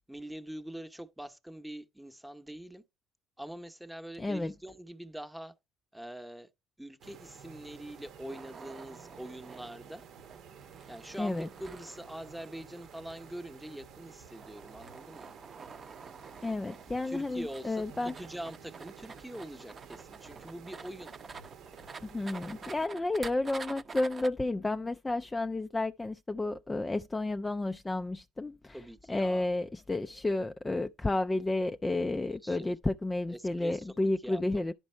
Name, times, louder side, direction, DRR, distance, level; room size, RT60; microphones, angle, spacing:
voice 1, 0.1-2.8 3.4-5.5 5.9-6.5 6.8-10.0 10.9-15.3 17.0-21.1 28.7-29.4 32.4-32.7 33.3-34.6, right 1 dB, 5° right, 0.9 m, -44 dB
voice 2, 4.2-4.5 11.2-11.5 16.4-18.1 22.0-28.8 29.1-34.7, left 2 dB, 15° left, 0.4 m, -31 dB
sound 1, 7.0-22.9, right 7 dB, 65° right, 0.9 m, -52 dB
sound 2, 8.3-24.3, right 4 dB, 30° right, 0.7 m, -49 dB
10.5 x 5.3 x 4.3 m
supercardioid pair, 85°, 0 cm